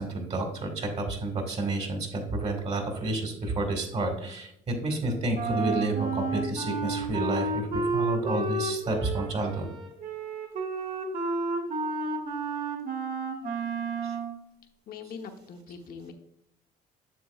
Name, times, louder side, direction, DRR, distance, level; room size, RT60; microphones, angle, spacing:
voice 1, 0.0-9.7 14.0-14.2, right 2 dB, 40° right, 3 dB, 1.7 m, -30 dB
Wind instrument woodwind instrument, 5.3-14.3, right 3 dB, 55° right, 1.7 m, -31 dB
voice 2, 14.9-16.1, left 5 dB, 60° left, 5 dB, 1.0 m, -42 dB
7.5 x 7.0 x 2.4 m, 0.78 s
cardioid pair, 110°, 17 cm